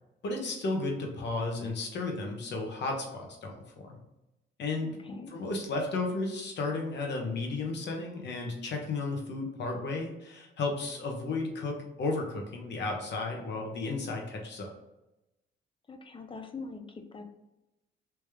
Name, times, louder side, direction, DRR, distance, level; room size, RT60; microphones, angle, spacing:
voice 1, 0.2-3.6 3.8-4.0 4.6-14.7, left 3 dB, 60° left, 1 dB, 1.1 m, -33 dB
voice 2, 4.8-5.3 15.9-17.2, left 4 dB, 25° left, 5 dB, 0.6 m, -43 dB
3.4 x 3.0 x 3.4 m, 0.95 s
cardioid pair, 90°, 20 cm